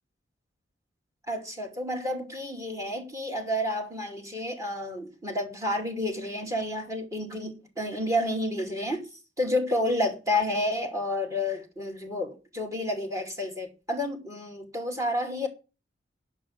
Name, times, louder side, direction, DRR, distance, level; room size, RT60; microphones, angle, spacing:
voice 1, 1.3-9.0 9.4-15.5, left 1 dB, 15° right, 2.5 m, -30 dB
11.0 x 6.2 x 8.6 m
head